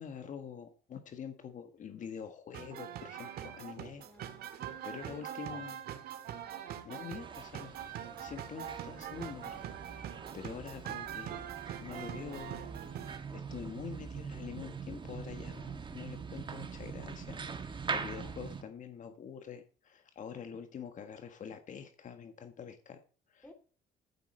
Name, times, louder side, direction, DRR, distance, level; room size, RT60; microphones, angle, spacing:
voice 1, 0.0-4.0 4.8-5.8 6.8-9.7 10.3-23.0 23.3-23.4, left 7 dB, 50° left, 1.5 m, -46 dB
sound 1, 2.5-13.2, right 10 dB, 65° right, 1.9 m, -43 dB
voice 2, 4.0-4.6 4.9-5.8 17.9-18.4 23.4-23.5, left 1 dB, 10° left, 2.6 m, -56 dB
sound 2, 7.2-18.6, right 5 dB, 30° right, 1.8 m, -43 dB
14.0 x 7.8 x 4.4 m
cardioid pair, 110°, 17 cm